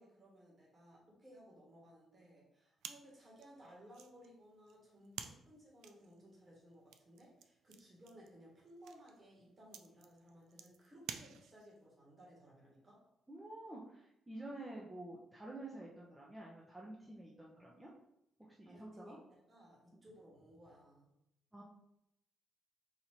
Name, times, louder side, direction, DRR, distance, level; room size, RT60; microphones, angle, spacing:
voice 1, 0.0-13.0 18.6-19.2 19.5-21.1, equal, 35° right, -3 dB, 1.7 m, -60 dB
sound 1, 2.8-11.8, right 8 dB, 85° right, 0.3 m, -53 dB
voice 2, 13.3-17.9 18.4-19.2 21.5-21.6, right 1 dB, 10° right, -4 dB, 0.8 m, -49 dB
4.2 x 2.7 x 4.5 m, 0.81 s
cardioid pair, 90°, 0 cm